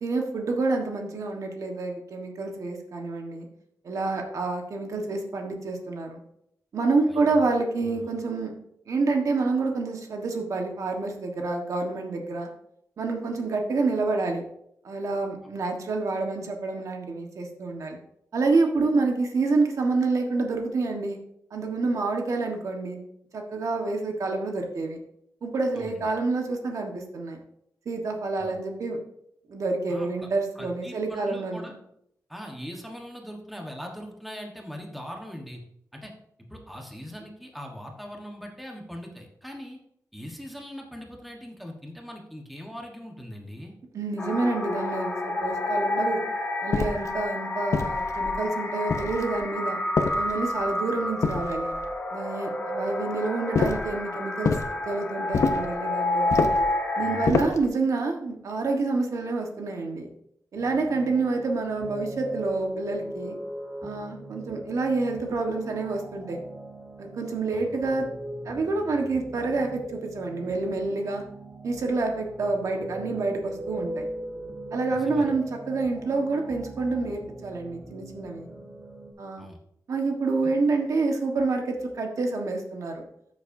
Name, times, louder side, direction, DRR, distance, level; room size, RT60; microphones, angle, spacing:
voice 1, 0.0-3.5 3.8-6.2 6.7-8.5 8.9-12.5 13.0-14.4 14.8-18.0 18.3-21.2 21.5-23.0 23.3-25.0 25.4-27.4 27.8-29.0 29.5-31.7 43.9-46.2 46.6-49.8 50.1-51.7 52.1-54.5 54.8-56.3 57.0-60.1 60.5-63.4 63.8-66.4 67.0-68.1 68.4-71.2 71.6-74.1 74.7-78.5 79.2-79.4 79.9-83.0, right 3 dB, 60° right, 2 dB, 1.4 m, -28 dB
voice 2, 7.1-7.4 7.8-8.0 25.7-26.0 28.4-28.5 29.9-30.3 30.5-31.7 32.3-35.6 35.9-36.1 36.5-39.8 40.1-43.7 57.0-57.4 67.5-67.7 74.9-75.4 79.4-79.6, equal, ahead, 1 dB, 1.2 m, -41 dB
sound 1, 44.2-57.3, left 1 dB, 20° left, 1.5 m, -29 dB
sound 2, 46.7-47.1 47.7-48.4 48.9-49.4 50.0-50.6 51.2-51.9 53.5-53.9 54.4-54.7 55.3-55.7 56.3-56.7 57.3-57.7, left 4 dB, 55° left, 0.7 m, -26 dB
sound 3, 60.5-79.1, right 1 dB, 35° right, 3.3 m, -40 dB
13.5 x 7.1 x 2.7 m, 0.74 s
wide cardioid pair, 155°, 6 cm